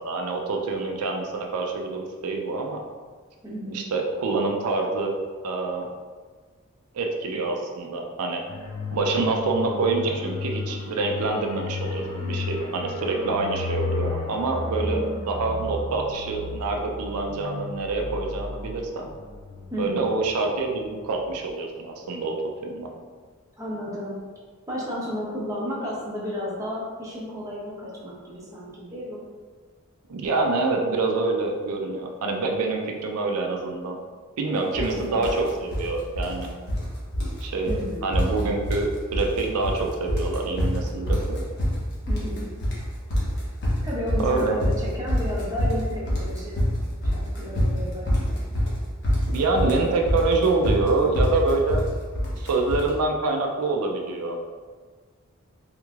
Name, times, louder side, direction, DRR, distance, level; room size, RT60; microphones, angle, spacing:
voice 1, 0.0-2.8 3.7-5.2 5.4-5.9 6.9-8.4 8.9-19.1 19.8-22.9 30.1-34.0 34.4-36.5 37.4-41.4 44.2-44.6 49.3-51.8 52.3-54.4, right 3 dB, 85° right, 1 dB, 0.4 m, -26 dB
voice 2, 3.4-3.9 14.8-15.1 19.7-20.1 23.6-24.2 24.7-29.2 34.7-35.2 37.6-38.1 42.1-42.5 43.8-46.6 47.1-48.4, equal, 15° right, -6 dB, 0.6 m, -33 dB
sound 1, 8.5-20.8 21.1-21.3, left 3 dB, 65° left, 0.5 m, -34 dB
sound 2, 34.7-34.9 35.2-35.9 36.1-36.9 37.1-37.4 37.7-37.8 38.1-38.9 39.1-39.8 40.1-52.9, equal, 50° left, 0.8 m, -25 dB
3.4 x 3.1 x 2.4 m, 1.5 s
head